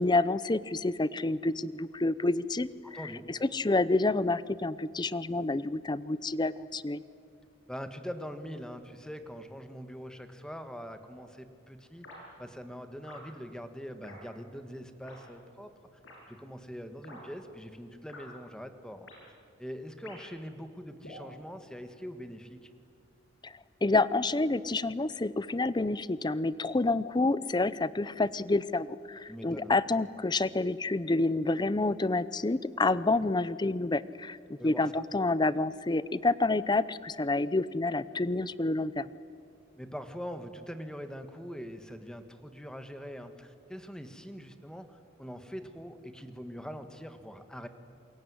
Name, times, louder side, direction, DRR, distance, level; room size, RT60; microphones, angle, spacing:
voice 1, 0.0-2.7 3.3-7.0 23.4-23.5 23.8-34.4 34.6-39.1, left 2 dB, 25° left, 17 dB, 0.6 m, -28 dB
voice 2, 2.8-3.3 7.7-12.1 12.4-15.7 16.3-19.1 19.6-22.7 29.3-29.7 34.6-34.9 39.8-47.7, equal, 5° left, 8 dB, 1.5 m, -43 dB
sound 1, 12.0-12.2 13.0-13.2 14.0-14.2 15.0-15.2 16.0-16.2 17.0-17.2 18.1-18.2 19.0-19.2 20.0-20.4 21.0-21.3, left 1 dB, 90° left, 7.7 m, -48 dB
27.5 x 22.5 x 9.6 m, 2.4 s
head